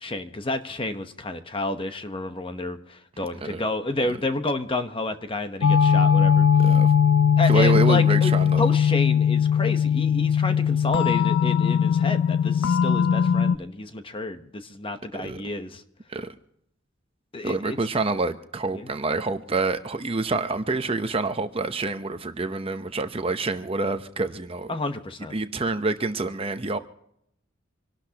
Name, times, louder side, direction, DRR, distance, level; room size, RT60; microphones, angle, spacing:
voice 1, 0.0-6.5 7.4-8.3 8.6-15.8 17.3-17.8 18.7-18.9 24.7-25.4, left 2 dB, 25° left, 8 dB, 0.9 m, -30 dB
sound 1, 5.6-13.6, left 7 dB, 90° left, 0.4 m, -19 dB
voice 2, 7.5-8.7 15.1-15.4 16.1-16.3 17.4-24.7 25.3-26.8, right 3 dB, 30° right, 9 dB, 0.8 m, -27 dB
26.0 x 12.0 x 2.9 m, 0.73 s
head